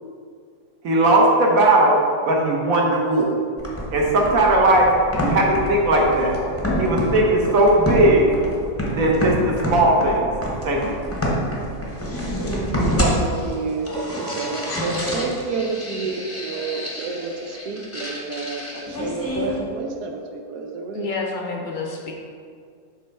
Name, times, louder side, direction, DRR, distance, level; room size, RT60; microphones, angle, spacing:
voice 1, 0.8-2.0 2.3-3.3 3.9-4.9 5.2-6.4 6.8-8.3 8.9-10.3 10.6-10.8, right 1 dB, 60° right, -1 dB, 1.4 m, -17 dB
sound 1, 3.6-19.6, equal, 10° left, 0.8 m, -27 dB
voice 2, 13.0-21.1, right 4 dB, 80° right, 3 dB, 1.2 m, -29 dB
voice 3, 20.9-22.1, left 4 dB, 60° left, 0 dB, 0.5 m, -29 dB
7.3 x 3.3 x 5.4 m, 2.2 s
omnidirectional pair, 1.7 m